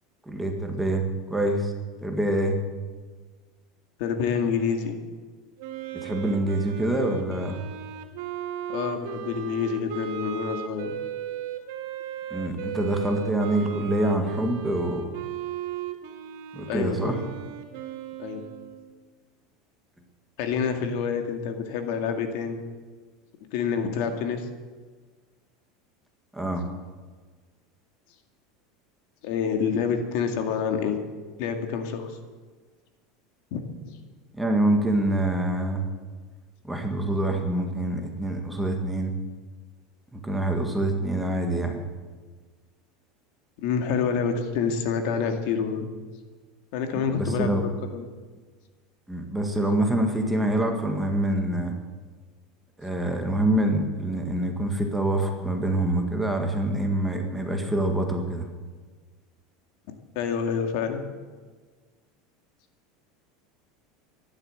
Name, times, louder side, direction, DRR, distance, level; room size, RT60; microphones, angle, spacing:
voice 1, 0.3-1.7 2.0-2.6 5.9-7.6 12.3-15.1 16.5-17.2 26.3-26.7 34.3-35.8 36.6-39.2 40.1-41.8 46.9-47.6 49.1-51.8 52.8-58.5, right 1 dB, 5° right, 3 dB, 1.7 m, -26 dB
voice 2, 4.0-5.0 8.7-10.9 16.7-17.3 18.2-18.4 20.4-22.6 23.5-24.5 29.2-31.0 31.4-32.1 33.5-33.9 43.6-45.9 46.7-47.5 47.9-48.0 60.2-61.0, left 6 dB, 60° left, 5 dB, 2.2 m, -27 dB
Wind instrument woodwind instrument, 5.6-19.0, right 11 dB, 65° right, 2.4 m, -36 dB
14.0 x 11.5 x 8.0 m, 1.4 s
supercardioid pair, 155°, 0 cm